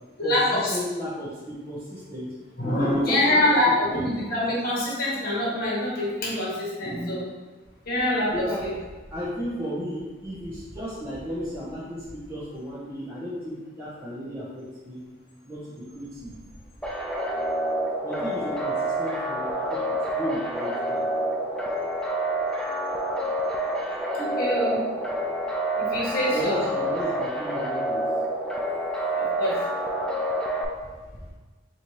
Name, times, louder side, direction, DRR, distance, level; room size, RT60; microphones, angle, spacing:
voice 1, 0.2-0.8 2.6-7.2 7.8-8.7 24.1-24.8 25.8-26.6 29.1-29.6, left 1 dB, 50° left, -6 dB, 1.4 m, -25 dB
voice 2, 0.7-2.3 2.7-3.5 3.9-4.0 8.3-8.6 9.1-15.0 15.4-16.4 18.0-21.0 26.3-28.0, equal, 15° right, -13 dB, 1.0 m, -34 dB
sound 1, 16.8-30.7, right 1 dB, 5° left, 0.3 m, -28 dB
4.3 x 2.8 x 3.2 m, 1.3 s
head